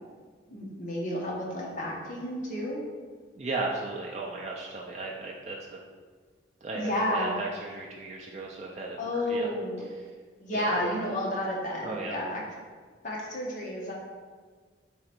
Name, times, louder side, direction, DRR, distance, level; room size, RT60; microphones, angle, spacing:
voice 1, 0.5-2.8 6.7-7.3 9.0-9.9 10.4-12.4 13.0-13.9, left 1 dB, 40° left, -4 dB, 0.9 m, -31 dB
voice 2, 3.4-5.8 6.6-9.5 10.0-10.1 10.5-10.8 11.8-12.1, right 3 dB, 35° right, -2 dB, 0.4 m, -36 dB
3.8 x 3.1 x 4.4 m, 1.5 s
head